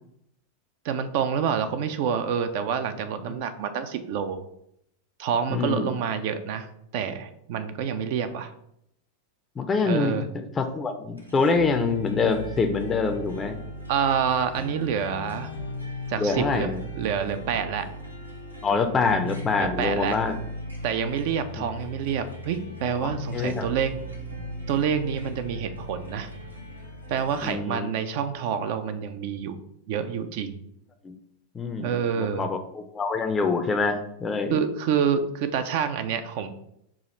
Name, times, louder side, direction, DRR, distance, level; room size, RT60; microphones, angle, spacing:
voice 1, 0.8-4.5 5.2-6.7 6.9-8.5 9.8-10.3 13.9-15.5 16.1-16.7 16.9-17.9 19.6-20.2 20.8-23.9 24.7-26.3 27.1-29.6 29.9-30.5 31.8-32.5 34.5-36.5, right 7 dB, 50° right, 10 dB, 0.4 m, -27 dB
voice 2, 5.5-6.0 9.6-10.2 10.6-13.6 16.2-16.8 18.6-20.4 23.0-23.7 27.4-27.9 31.0-31.1 31.5-34.6, left 4 dB, 20° left, 7 dB, 0.4 m, -25 dB
sound 1, 11.2-27.5, equal, 85° right, 0.7 m, -37 dB
4.8 x 2.4 x 4.1 m, 0.74 s
figure-of-eight pair, 90°, 0 cm